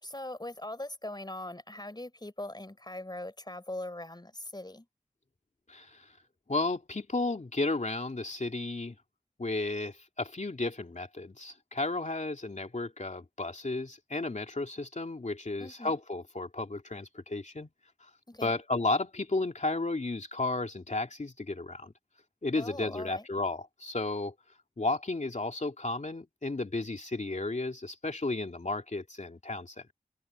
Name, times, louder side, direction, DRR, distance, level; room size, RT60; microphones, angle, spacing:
voice 1, 0.0-4.9 15.6-16.0 18.3-18.6 22.6-23.3, left 1 dB, 30° left, 5.7 m, -41 dB
voice 2, 5.7-6.0 6.5-9.0 9.4-17.7 18.4-21.9 22.4-24.3 24.8-29.9, left 2 dB, 60° left, 3.0 m, -33 dB
wide cardioid pair, 50°, 14 cm